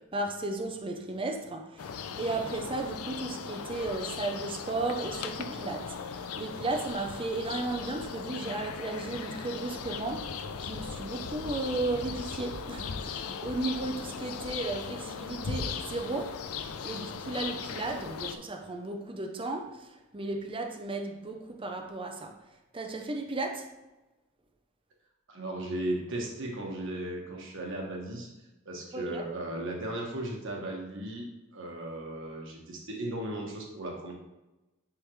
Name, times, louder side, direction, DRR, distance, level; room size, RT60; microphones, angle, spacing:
voice 1, 0.0-19.9 20.1-22.4 22.7-23.7 28.9-29.2, right 2 dB, 25° right, 0.6 m, -35 dB
sound 1, 1.8-18.4, left 6 dB, 85° left, 0.5 m, -38 dB
voice 2, 25.3-28.3 28.6-31.2 31.5-34.1, right 1 dB, 60° right, 1.4 m, -36 dB
9.9 x 3.7 x 3.1 m
head